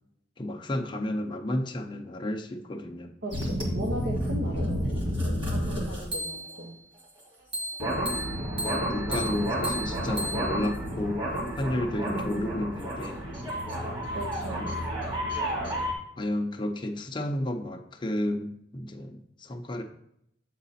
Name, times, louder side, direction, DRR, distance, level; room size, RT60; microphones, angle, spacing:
voice 1, 0.4-3.1 7.8-8.1 8.6-11.3 11.6-13.2 14.6-14.7 16.2-19.8, left 1 dB, 25° left, 3 dB, 0.6 m, -32 dB
voice 2, 3.2-6.7 12.0-12.6 14.1-14.7, equal, 65° right, -2 dB, 1.0 m, -37 dB
sound 1, 3.3-6.6 7.5-15.9, equal, 30° right, 1.7 m, -30 dB
7.7 x 4.0 x 4.2 m, 0.76 s
head